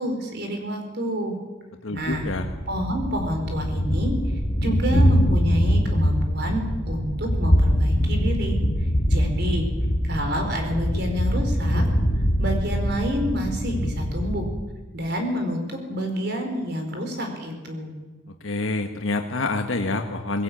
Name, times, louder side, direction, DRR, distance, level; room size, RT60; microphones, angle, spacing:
voice 1, 0.0-1.4 1.9-2.3 2.7-4.2 4.6-8.6 9.1-9.7 10.0-11.8 12.4-14.5 14.9-18.0, equal, 55° right, 4 dB, 4.8 m, -28 dB
voice 2, 1.8-2.5 18.4-20.4, left 2 dB, 80° left, 5 dB, 1.4 m, -27 dB
Thunder, 2.0-14.7, equal, 40° left, 2.4 m, -23 dB
20.5 x 17.0 x 8.8 m, 1.3 s
head